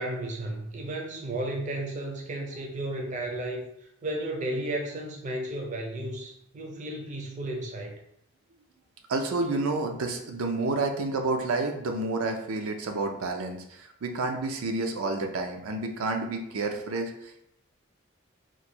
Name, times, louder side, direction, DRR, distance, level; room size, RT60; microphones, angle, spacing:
voice 1, 0.0-3.7 4.0-8.0, right 1 dB, 35° right, 1 dB, 0.5 m, -33 dB
voice 2, 9.1-17.4, right 3 dB, 85° right, 4 dB, 0.5 m, -30 dB
3.0 x 2.2 x 4.2 m, 0.77 s
head